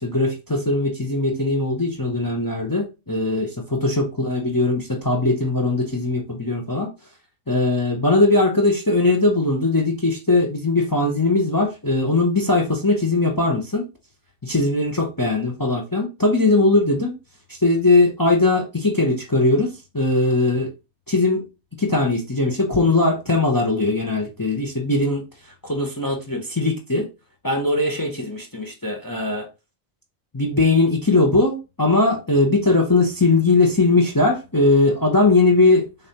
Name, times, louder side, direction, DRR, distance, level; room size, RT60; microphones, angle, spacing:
voice 1, 0.0-6.9 7.5-13.8 14.4-17.2 17.5-20.7 21.1-21.4 21.8-25.2 25.6-27.1 27.4-29.5 30.3-35.9, left 2 dB, 20° left, 0.7 m, -20 dB
6.7 x 2.7 x 2.8 m
omnidirectional pair, 1.2 m